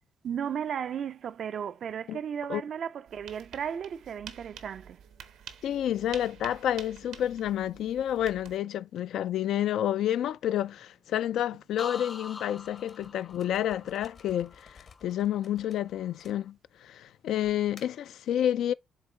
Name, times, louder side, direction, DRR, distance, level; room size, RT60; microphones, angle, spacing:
voice 1, 0.2-5.0, right 8 dB, 60° right, 0.3 m, -35 dB
sound 1, 3.1-8.6, right 8 dB, 85° right, 0.8 m, -48 dB
voice 2, 5.6-18.7, left 11 dB, 75° left, 0.3 m, -29 dB
sound 2, 11.8-15.6 16.0-16.4, left 4 dB, 35° left, 0.6 m, -45 dB
sound 3, 12.6-16.9 17.4-18.1, left 5 dB, 55° left, 1.1 m, -56 dB
7.4 x 3.6 x 4.2 m
cardioid pair, 90°, 0 cm